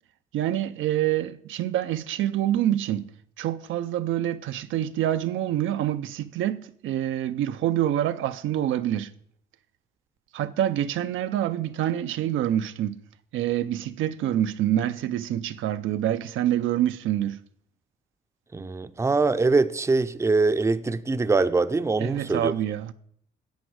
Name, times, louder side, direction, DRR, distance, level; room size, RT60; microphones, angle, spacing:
voice 1, 0.3-3.1 3.4-9.1 10.3-13.0 13.3-17.4 22.0-22.9, right 12 dB, 80° right, 0.5 m, -26 dB
voice 2, 18.5-22.5, right 3 dB, 15° right, 0.5 m, -23 dB
10.5 x 7.9 x 4.8 m
cardioid pair, 90°, 20 cm